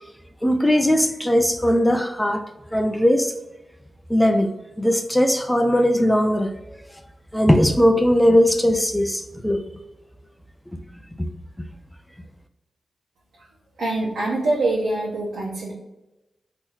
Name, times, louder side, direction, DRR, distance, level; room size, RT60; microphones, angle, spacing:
voice 1, 0.4-2.4 2.7-3.3 4.1-4.5 4.8-6.5 7.3-9.6 11.2-11.3, equal, 5° left, 6 dB, 0.5 m, -19 dB
voice 2, 13.8-15.7, right 2 dB, 90° right, -6 dB, 1.1 m, -24 dB
3.8 x 3.0 x 4.3 m, 0.98 s
cardioid pair, 70°, 0 cm